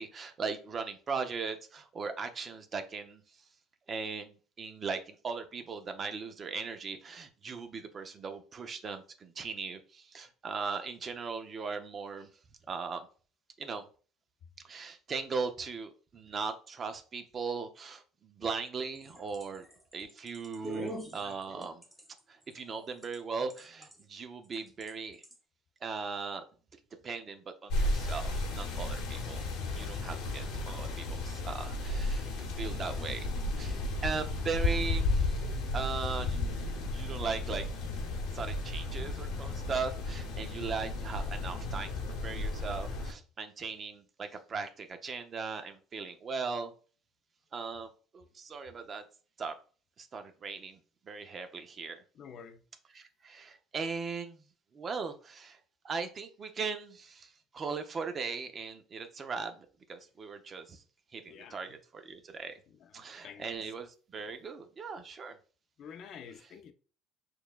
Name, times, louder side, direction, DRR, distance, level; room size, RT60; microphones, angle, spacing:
voice 1, 0.0-3.2 3.9-12.3 12.7-13.1 13.6-13.9 14.6-19.7 19.9-21.8 22.3-25.2 25.8-26.4 27.0-29.4 29.7-32.2 32.5-33.3 33.6-36.4 36.8-37.7 38.3-41.9 42.2-46.7 47.5-47.9 48.1-49.0 49.4-49.5 50.0-50.8 51.1-52.0 52.9-54.4 54.7-55.6 55.8-60.8 61.1-62.6 62.9-65.4, right 5 dB, 35° right, 0.7 m, -38 dB
sound 1, 18.9-23.2 23.5-24.0 24.5-24.9 25.2-25.4, right 1 dB, 5° right, 0.9 m, -44 dB
sound 2, 27.7-43.1, left 2 dB, 75° left, 1.0 m, -33 dB
voice 2, 52.1-52.6 61.3-61.6 62.8-63.5 65.8-66.7, left 7 dB, 55° left, 0.5 m, -49 dB
6.3 x 2.3 x 2.4 m
supercardioid pair, 100°, 0 cm